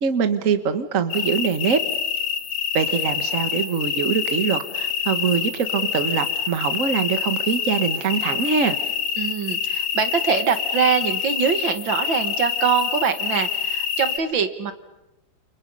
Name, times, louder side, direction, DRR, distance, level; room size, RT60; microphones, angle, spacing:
voice 1, 0.0-1.8 2.7-8.8, right 6 dB, 45° right, 10 dB, 1.6 m, -23 dB
sound 1, 1.1-14.2, left 7 dB, 70° left, 2.3 m, -26 dB
voice 2, 9.2-14.7, right 6 dB, 65° right, 10 dB, 2.2 m, -23 dB
30.0 x 29.5 x 5.5 m, 0.93 s
omnidirectional pair, 2.3 m